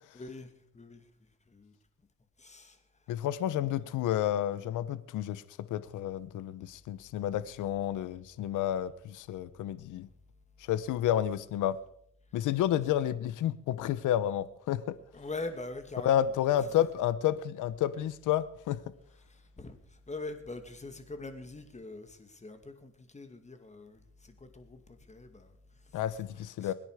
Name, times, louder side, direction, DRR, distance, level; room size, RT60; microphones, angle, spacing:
voice 1, 0.1-1.7 2.4-2.8 3.4-3.5 15.1-16.9 19.2-26.0 26.6-26.7, left 2 dB, 25° left, 2.4 m, -44 dB
voice 2, 3.1-5.4 5.7-10.1 10.7-11.8 12.3-15.0 16.0-18.8 25.9-26.7, left 11 dB, 85° left, 1.0 m, -30 dB
22.5 x 10.0 x 5.0 m
cardioid pair, 90°, 30 cm